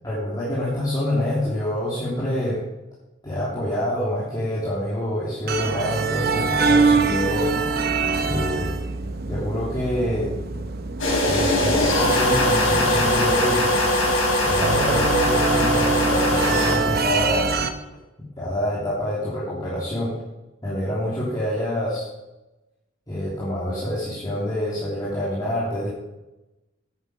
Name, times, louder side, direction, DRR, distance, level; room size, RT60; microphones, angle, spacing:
voice 1, 0.0-2.6 3.2-7.5 8.2-8.7 9.3-10.3 11.2-13.7 14.4-17.5 18.4-20.2 20.6-22.0 23.1-25.9, equal, 20° left, -9 dB, 3.1 m, -26 dB
sound 1, 5.5-17.7, right 4 dB, 50° right, 0.8 m, -25 dB
sound 2, 11.0-16.8, left 1 dB, 80° left, 4.5 m, -21 dB
9.5 x 9.5 x 5.4 m, 0.99 s
head